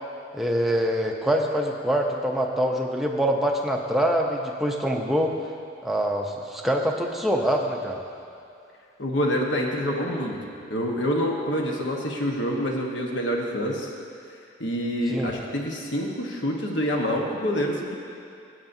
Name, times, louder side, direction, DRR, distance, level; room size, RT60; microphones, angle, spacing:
voice 1, 0.3-5.3 5.8-8.0 15.1-15.3, equal, ahead, 0 dB, 0.5 m, -24 dB
voice 2, 9.0-10.4 10.7-13.9 14.6-18.0, equal, 65° left, 0 dB, 1.2 m, -26 dB
16.0 x 8.0 x 2.7 m, 2.5 s
head